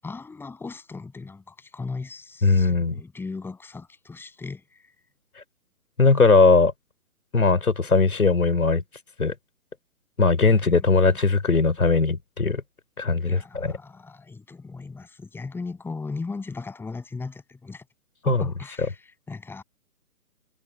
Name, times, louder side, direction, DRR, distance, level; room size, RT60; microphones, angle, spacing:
voice 1, 0.0-4.6 10.5-10.9 13.3-17.8 18.2-19.6, left 4 dB, 5° left, 7.2 m, -37 dB
voice 2, 2.4-3.0 6.0-6.7 7.3-8.8 9.2-9.3 10.2-12.6 13.0-13.7 18.3-18.4, left 4 dB, 75° left, 4.5 m, -19 dB
figure-of-eight pair, 140°, 43 cm